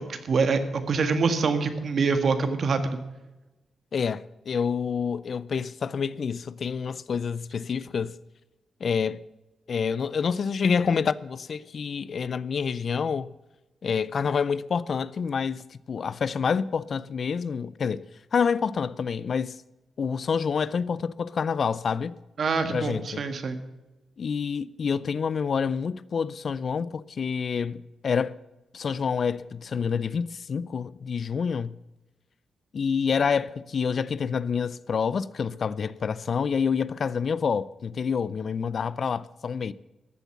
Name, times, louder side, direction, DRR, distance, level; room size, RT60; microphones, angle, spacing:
voice 1, 0.0-3.0 22.4-23.6, right 4 dB, 55° right, 1.6 m, -25 dB
voice 2, 3.9-8.2 8.8-9.2 9.7-13.3 13.8-19.6 20.0-22.2 22.7-23.2 24.2-28.4 28.7-31.8 32.7-39.7, left 6 dB, 50° left, 0.4 m, -28 dB
14.0 x 8.1 x 7.1 m
cardioid pair, 115°, 0 cm